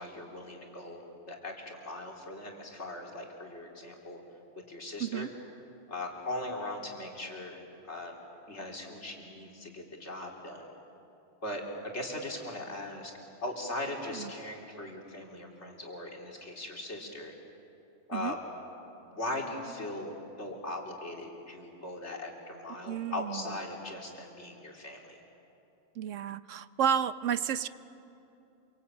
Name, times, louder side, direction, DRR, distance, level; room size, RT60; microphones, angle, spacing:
voice 1, 0.0-4.2 4.7-5.3 5.9-8.2 8.5-10.7 11.4-13.1 13.4-17.3 18.1-18.4 19.0-20.1 20.4-25.2, left 1 dB, 65° left, 0 dB, 3.8 m, -39 dB
voice 2, 5.0-5.3 14.1-14.3 18.1-18.3 22.9-23.6 26.0-27.7, right 8 dB, 80° right, 14 dB, 1.1 m, -31 dB
27.0 x 24.5 x 8.8 m, 2.9 s
omnidirectional pair, 1.3 m